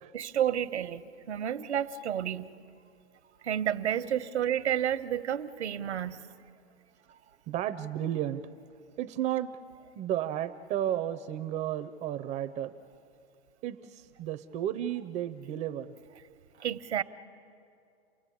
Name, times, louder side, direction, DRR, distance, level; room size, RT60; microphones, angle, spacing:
voice 1, 0.1-2.5 3.4-6.3 16.6-17.0, right 10 dB, 90° right, 11 dB, 1.1 m, -30 dB
voice 2, 7.5-8.4 9.0-9.5 10.0-12.7 13.6-15.9, right 11 dB, 20° right, 11 dB, 0.5 m, -33 dB
29.0 x 18.5 x 8.6 m, 2.6 s
hypercardioid pair, 135°, 33 cm